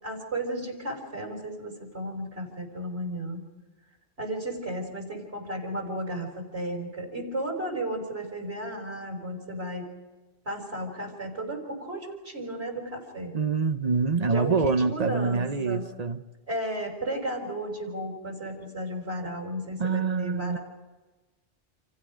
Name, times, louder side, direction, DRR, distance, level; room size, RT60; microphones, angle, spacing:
voice 1, 0.0-3.4 4.2-9.8 10.5-13.3 14.3-15.8 16.5-20.6, right 1 dB, 70° right, 5.3 m, -34 dB
voice 2, 13.3-16.2 19.8-20.6, right 4 dB, 40° right, 1.0 m, -25 dB
29.5 x 27.0 x 5.1 m
omnidirectional pair, 1.1 m